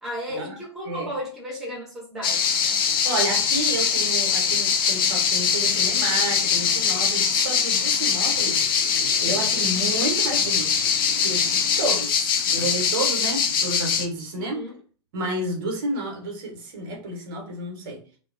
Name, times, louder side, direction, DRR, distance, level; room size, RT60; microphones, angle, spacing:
voice 1, 0.0-2.5 9.2-9.6 14.4-14.8, equal, ahead, -5 dB, 1.1 m, -35 dB
sound 1, 2.2-14.1, left 7 dB, 50° left, 0.4 m, -22 dB
voice 2, 3.0-14.6 15.1-18.0, right 2 dB, 50° right, 0 dB, 1.0 m, -31 dB
2.3 x 2.1 x 2.5 m, 0.40 s
figure-of-eight pair, 100°, 15 cm